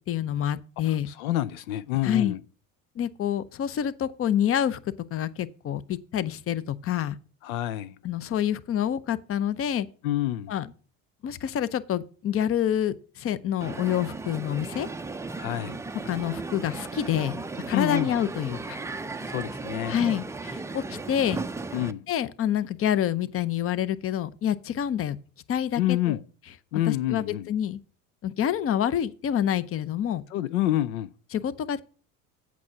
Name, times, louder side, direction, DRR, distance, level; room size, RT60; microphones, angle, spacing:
voice 1, 0.1-1.1 2.0-2.4 3.0-4.8 5.1-7.2 8.0-9.9 10.5-10.7 11.2-14.9 16.0-18.8 19.9-21.4 22.1-25.2 25.5-26.2 26.9-27.8 28.2-30.2 31.3-31.8, left 10 dB, 35° left, 0.6 m, -27 dB
voice 2, 1.1-2.4 7.4-7.9 10.0-10.5 15.4-15.8 17.7-18.2 19.2-20.0 21.7-22.1 25.8-26.2 26.7-27.5 30.3-31.1, left 14 dB, 85° left, 0.5 m, -28 dB
Crowd, 13.6-21.9, right 3 dB, 10° right, 0.4 m, -36 dB
8.4 x 6.1 x 5.7 m
hypercardioid pair, 75°, 40 cm